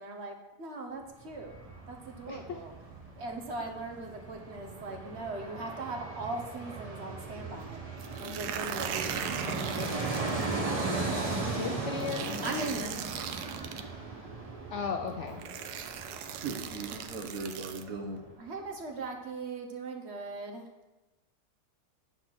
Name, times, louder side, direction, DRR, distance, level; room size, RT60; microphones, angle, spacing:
voice 1, 0.0-1.6 1.9-2.7 3.2-7.8 8.2-10.3 12.4-13.3 15.1-15.5 18.4-20.7, right 2 dB, 50° right, 3 dB, 1.1 m, -40 dB
Fixed-wing aircraft airplane, 1.0-18.0 18.3-18.4, right 3 dB, 25° right, 1.0 m, -37 dB
voice 2, 2.3-2.6 10.7-11.1 11.6-12.7 14.7-15.4, left 7 dB, 70° left, 5 dB, 0.7 m, -37 dB
sound 1, 8.0-10.5 12.0-13.8 14.8-14.9 15.4-17.8, right 9 dB, 90° right, 1.2 m, -39 dB
voice 3, 16.4-18.2, right 4 dB, 65° right, 4 dB, 1.4 m, -38 dB
9.3 x 4.2 x 6.1 m, 1.1 s
omnidirectional pair, 1.7 m